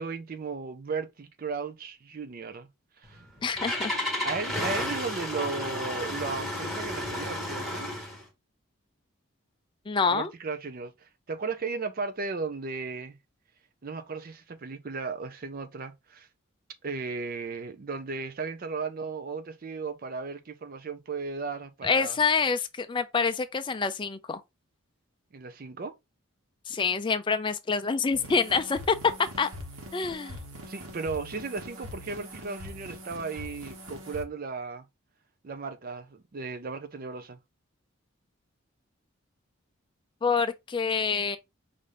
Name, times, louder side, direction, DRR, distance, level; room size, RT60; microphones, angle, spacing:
voice 1, 0.0-2.7 3.0-3.2 4.2-7.9 10.1-13.2 13.8-16.3 16.8-22.2 25.3-25.9 30.6-34.9 35.4-37.4, right 4 dB, 45° right, 0.4 m, -35 dB
Engine starting, 3.0-8.2, left 1 dB, ahead, 1.1 m, -32 dB
voice 2, 3.4-3.9 9.9-10.3 21.8-24.4 26.7-29.0 29.4-29.5 29.9-30.4 40.2-41.4, left 5 dB, 25° left, 0.4 m, -27 dB
sound 1, 28.1-34.2, equal, 90° right, 1.2 m, -43 dB
5.4 x 2.6 x 3.3 m
head